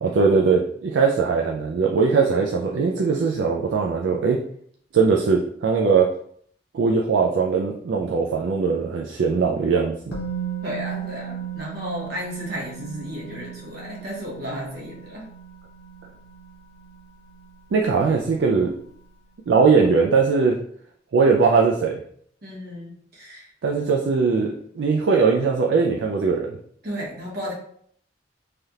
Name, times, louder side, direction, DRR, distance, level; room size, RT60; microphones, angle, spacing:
voice 1, 0.0-4.4 4.9-6.1 6.7-10.2 17.7-18.7 19.5-20.6 21.1-22.0 23.6-26.6, right 5 dB, 75° right, 0 dB, 0.4 m, -20 dB
Musical instrument, 10.1-18.0 18.3-18.5, right 8 dB, 60° left, 0.8 m, -36 dB
voice 2, 10.6-15.3 22.4-23.5 26.8-27.5, equal, 55° right, -4 dB, 1.2 m, -33 dB
3.3 x 2.7 x 2.3 m, 0.63 s
head